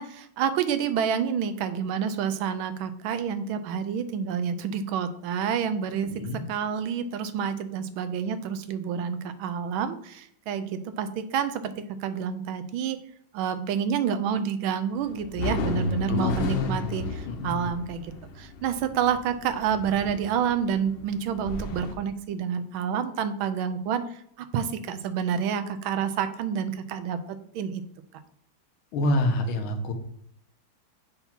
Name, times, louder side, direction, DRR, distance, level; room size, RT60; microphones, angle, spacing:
voice 1, 0.0-6.1 6.5-13.0 13.3-27.2 27.5-27.8, right 7 dB, 80° right, 11 dB, 1.4 m, -28 dB
voice 2, 6.0-6.4 16.1-16.7 17.3-17.7 28.9-29.9, left 1 dB, 90° left, 5 dB, 1.7 m, -27 dB
sound 1, 15.0-22.0, left 3 dB, 70° left, 1.3 m, -33 dB
6.9 x 2.8 x 5.7 m, 0.66 s
omnidirectional pair, 2.2 m